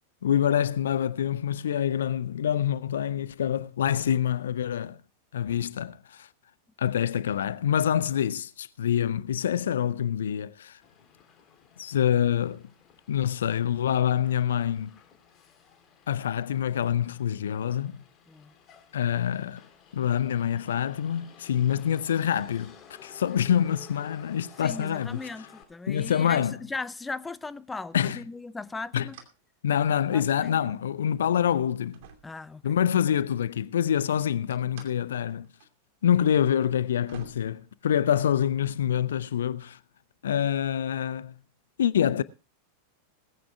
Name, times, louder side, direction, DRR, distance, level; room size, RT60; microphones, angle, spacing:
voice 1, 0.2-5.0 5.3-6.3 6.8-10.8 11.8-12.6 13.1-15.0 16.1-18.0 18.9-19.6 19.9-22.7 23.0-25.3 25.9-26.6 27.9-28.2 28.9-29.1 29.6-32.0 32.6-35.5 36.0-39.8 40.2-41.4 41.8-42.2, left 9 dB, 65° left, 0.6 m, -26 dB
Motor vehicle (road), 10.8-25.6, left 7 dB, 30° left, 3.4 m, -54 dB
voice 2, 24.6-29.2 30.1-30.8 32.2-32.8, left 3 dB, 10° left, 0.6 m, -38 dB
sound 1, 29.1-29.4 29.7-30.6 31.2-31.3 31.9-33.0 34.5-35.0 35.3-35.7 35.9-36.0 36.7-36.8 37.1-38.3, right 8 dB, 50° right, 2.6 m, -51 dB
20.0 x 15.0 x 2.3 m
figure-of-eight pair, 90°, 0 cm